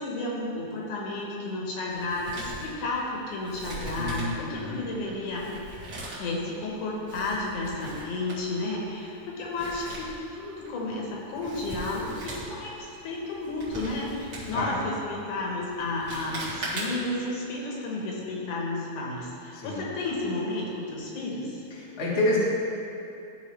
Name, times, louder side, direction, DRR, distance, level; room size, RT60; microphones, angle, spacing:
voice 1, 0.0-5.5 6.2-21.6, left 2 dB, 75° left, -3 dB, 2.6 m, -32 dB
Male speech man speaking, 1.9-17.2, right 1 dB, 40° right, 2.1 m, -41 dB
voice 2, 4.0-4.8 14.5-14.8 19.5-19.8 21.8-22.4, left 2 dB, 40° left, -6 dB, 1.0 m, -28 dB
14.0 x 4.8 x 3.3 m, 2.8 s
omnidirectional pair, 3.6 m